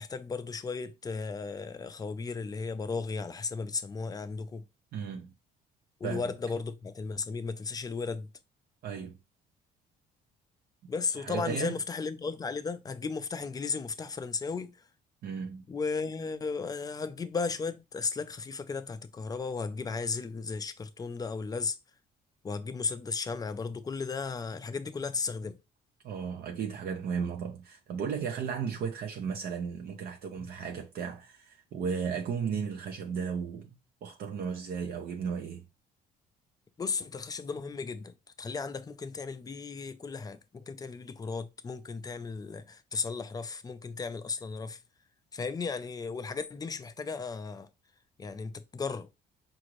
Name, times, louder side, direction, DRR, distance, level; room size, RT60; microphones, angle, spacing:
voice 1, 0.0-4.6 6.0-8.3 10.9-14.8 15.7-21.8 22.4-25.6 30.4-30.5 36.8-44.8 45.3-47.7 48.2-49.1, left 4 dB, 20° left, 0.4 m, -35 dB
voice 2, 4.9-5.3 6.0-6.3 8.8-9.2 11.2-11.7 15.2-15.6 26.0-33.7 34.0-35.6, right 6 dB, 65° right, 0.6 m, -35 dB
4.9 x 2.6 x 3.0 m
cardioid pair, 110°, 17 cm